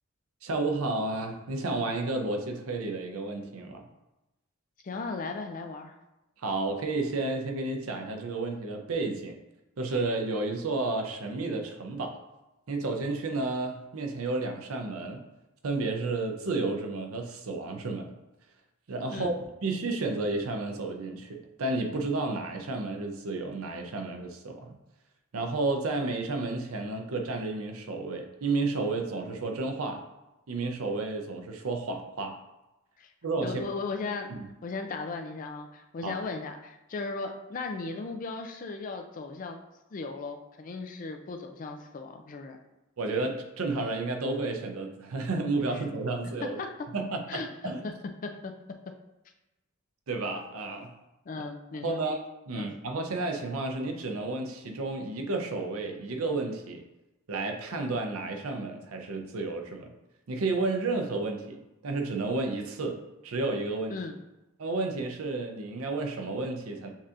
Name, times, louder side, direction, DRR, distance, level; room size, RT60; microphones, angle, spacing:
voice 1, 0.4-3.8 6.4-9.4 9.8-12.2 12.7-15.2 15.6-18.1 18.9-19.3 19.6-24.8 25.3-30.0 30.5-32.4 33.2-33.6 34.3-34.5 36.0-36.2 43.0-46.6 46.9-47.8 50.1-50.9 51.8-52.2 52.5-56.8 57.3-59.9 60.3-64.0 64.6-66.9, right 3 dB, 85° right, 4 dB, 0.6 m, -31 dB
voice 2, 4.8-5.9 19.1-19.3 33.0-33.1 33.4-34.3 34.6-39.6 39.9-42.6 46.4-46.7 47.3-47.9 48.2-48.5 51.3-52.0 52.5-52.7 63.9-64.2, left 3 dB, 40° left, 5 dB, 0.4 m, -36 dB
7.2 x 2.7 x 2.5 m, 0.99 s
head